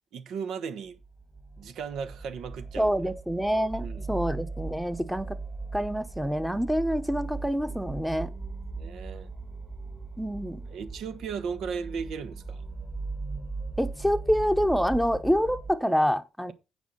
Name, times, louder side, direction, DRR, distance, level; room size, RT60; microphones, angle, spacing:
voice 1, 0.1-1.0 1.6-2.9 3.8-4.0 8.7-9.3 10.7-12.6, right 6 dB, 75° right, 1.1 m, -36 dB
sound 1, 0.9-15.8, right 3 dB, 20° right, 1.9 m, -38 dB
voice 2, 2.8-5.4 5.7-8.3 10.2-10.6 13.8-16.5, equal, ahead, 1.0 m, -27 dB
9.4 x 4.5 x 7.0 m
cardioid pair, 90°, 0 cm